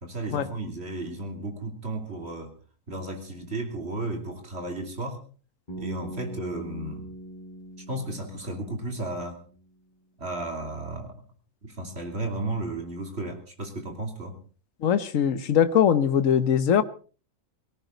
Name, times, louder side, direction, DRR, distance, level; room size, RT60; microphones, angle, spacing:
voice 1, 0.0-2.5 2.9-5.2 5.8-7.1 7.9-9.4 10.2-11.2 11.6-14.4, right 2 dB, 40° right, 3 dB, 3.5 m, -34 dB
Bass guitar, 5.7-9.7, right 1 dB, 30° left, 7.2 m, -42 dB
voice 2, 14.8-16.8, left 8 dB, 60° left, 12 dB, 1.4 m, -21 dB
19.0 x 17.5 x 4.0 m, 0.39 s
omnidirectional pair, 1.6 m